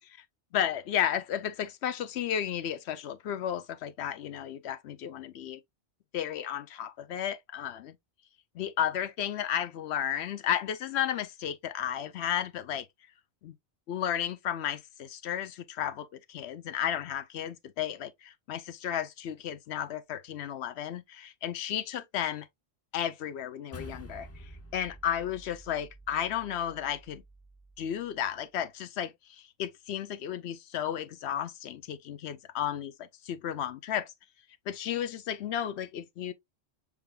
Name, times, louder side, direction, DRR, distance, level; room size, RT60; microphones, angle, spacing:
voice 1, 0.5-5.6 6.1-7.9 8.5-12.9 13.4-13.5 13.9-22.5 22.9-24.3 24.7-27.2 27.8-32.9 33.3-34.1 34.7-36.3, left 10 dB, 80° left, 0.9 m, -33 dB
sound 1, 23.7-28.3, equal, 20° left, 0.4 m, -49 dB
7.0 x 3.3 x 2.2 m
omnidirectional pair, 1.1 m